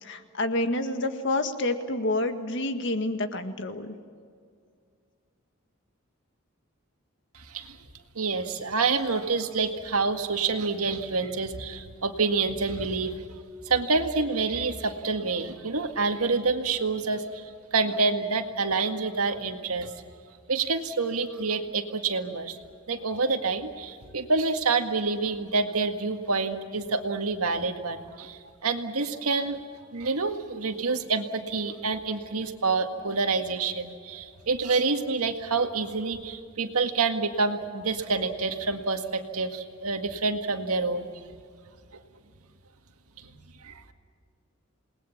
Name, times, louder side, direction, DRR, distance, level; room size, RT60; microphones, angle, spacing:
voice 1, 0.0-3.9, left 2 dB, 55° left, 7 dB, 1.8 m, -28 dB
voice 2, 7.3-7.8 8.2-13.2 13.7-19.9 20.5-22.6 22.9-29.6 29.9-41.1 43.6-43.8, right 4 dB, 90° right, 6 dB, 1.9 m, -27 dB
28.5 x 20.0 x 7.2 m, 2.2 s
head